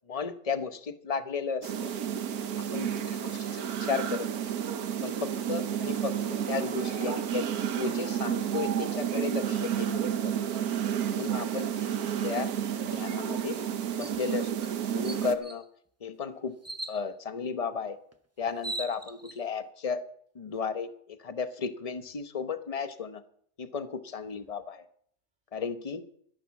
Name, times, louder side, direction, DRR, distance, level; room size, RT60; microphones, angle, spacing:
voice 1, 0.1-1.7 2.7-4.5 5.0-7.5 7.7-10.4 11.1-11.7 12.2-13.6 13.9-15.7 16.0-16.6 16.9-18.0 18.4-20.0 20.3-23.2 23.6-24.8 25.5-26.0, left 5 dB, 30° left, 11 dB, 0.9 m, -34 dB
sound 1, 1.6-15.3, right 9 dB, 80° right, 1.5 m, -31 dB
sound 2, 6.0-9.1 11.2-13.8 16.2-16.4 18.7-19.0 21.9-22.1 24.2-24.5, right 1 dB, 50° right, 3.3 m, -51 dB
sound 3, 14.0-14.2 14.6-14.7 15.0-15.6 16.6-17.0 18.1-18.2 18.5-19.4, right 2 dB, 15° right, 0.7 m, -38 dB
13.5 x 11.0 x 7.2 m, 0.64 s
omnidirectional pair, 1.6 m